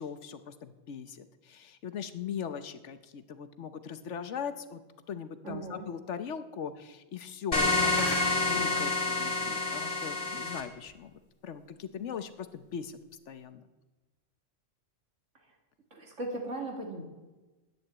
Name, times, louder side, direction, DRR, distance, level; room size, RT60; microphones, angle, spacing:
voice 1, 0.0-4.8 5.1-11.1 11.4-12.9 13.3-13.6, left 7 dB, 70° left, 11 dB, 1.2 m, -40 dB
voice 2, 5.4-5.9 15.9-17.0, right 2 dB, 80° right, 2 dB, 2.6 m, -37 dB
sound 1, 7.5-10.6, left 2 dB, 30° left, 1.9 m, -28 dB
11.0 x 9.3 x 8.6 m, 1.2 s
omnidirectional pair, 1.3 m